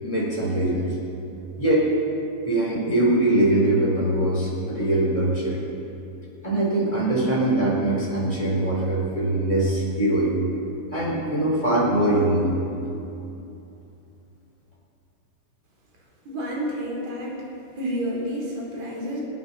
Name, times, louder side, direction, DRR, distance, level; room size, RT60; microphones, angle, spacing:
voice 1, 0.0-0.9 1.6-1.9 2.4-5.6 6.4-10.3 10.9-12.5, right 1 dB, 10° left, -5 dB, 4.1 m, -22 dB
voice 2, 16.3-17.4 17.8-19.2, equal, 55° right, -2 dB, 4.5 m, -29 dB
27.0 x 9.1 x 5.7 m, 2.8 s
omnidirectional pair, 3.8 m